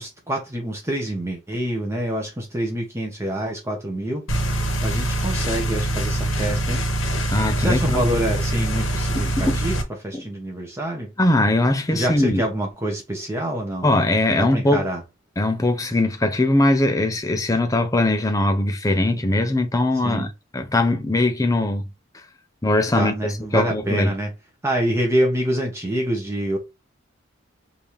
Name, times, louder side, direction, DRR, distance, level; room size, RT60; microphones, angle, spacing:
voice 1, 0.0-6.8 7.6-11.1 11.9-13.9 14.3-15.0 20.0-20.3 22.9-24.3 24.6-26.6, right 1 dB, 15° right, 1.0 m, -26 dB
sound 1, 4.3-9.8, right 1 dB, 75° left, 1.3 m, -24 dB
voice 2, 7.3-8.0 9.2-9.6 10.1-10.2 11.2-12.4 13.8-14.9 15.4-20.3 20.5-21.8 22.6-24.1, left 2 dB, 15° left, 0.7 m, -20 dB
5.3 x 2.8 x 3.3 m
head